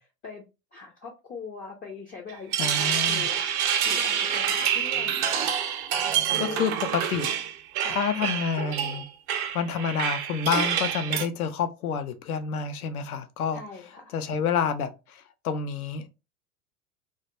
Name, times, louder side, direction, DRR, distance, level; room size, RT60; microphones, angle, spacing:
voice 1, 0.7-3.5 3.8-5.2 6.3-6.7 7.8-8.0 13.5-14.2, left 5 dB, 20° left, 0.4 m, -41 dB
sound 1, 2.3-11.3, right 9 dB, 50° right, 0.6 m, -27 dB
voice 2, 2.6-3.3 6.4-7.3 7.9-9.0 9.5-13.6 14.1-16.1, left 6 dB, 80° left, 0.6 m, -28 dB
2.3 x 2.1 x 2.8 m
hypercardioid pair, 85°, 43 cm